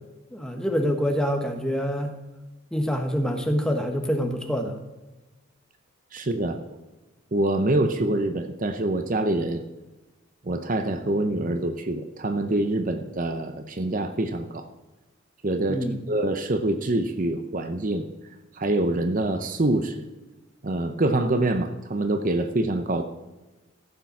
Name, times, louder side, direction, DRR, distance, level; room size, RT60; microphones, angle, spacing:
voice 1, 0.3-2.2 2.7-4.8 15.7-16.0, equal, 5° left, 4 dB, 1.2 m, -26 dB
voice 2, 6.1-6.8 7.3-9.6 10.5-14.7 15.4-18.1 18.6-20.0 20.6-23.0, right 2 dB, 40° right, 8 dB, 0.7 m, -25 dB
14.5 x 6.8 x 5.9 m, 1.1 s
head